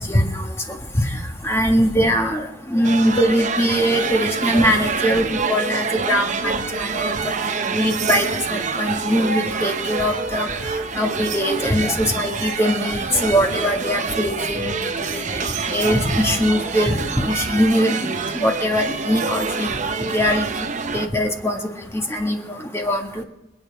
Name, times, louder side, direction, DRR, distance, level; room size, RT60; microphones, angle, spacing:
voice 1, 0.1-0.5 1.0-1.2 1.4-7.1 7.7-10.5 11.0-14.8 15.1-15.2 15.7-17.9 18.4-19.7 20.1-20.5 20.9-21.6 22.1-23.1, equal, 15° left, 2 dB, 1.7 m, -21 dB
sound 1, 2.8-21.1, right 4 dB, 40° right, 0.8 m, -26 dB
27.5 x 9.3 x 3.5 m, 0.92 s
head